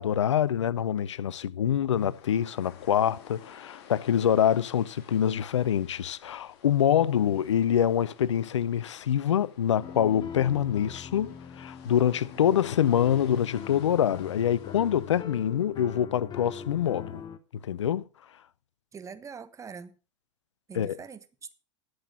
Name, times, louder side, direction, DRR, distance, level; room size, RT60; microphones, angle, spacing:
voice 1, 0.0-17.2 17.6-18.0 20.7-21.0, left 9 dB, 75° left, 0.6 m, -25 dB
sound 1, 1.9-15.2, left 8 dB, 60° left, 2.1 m, -53 dB
sound 2, 9.8-17.4, left 7 dB, 30° left, 1.0 m, -42 dB
voice 2, 18.9-19.9 20.7-21.5, right 6 dB, 20° right, 1.2 m, -43 dB
11.5 x 7.9 x 5.8 m
hypercardioid pair, 90°, 15 cm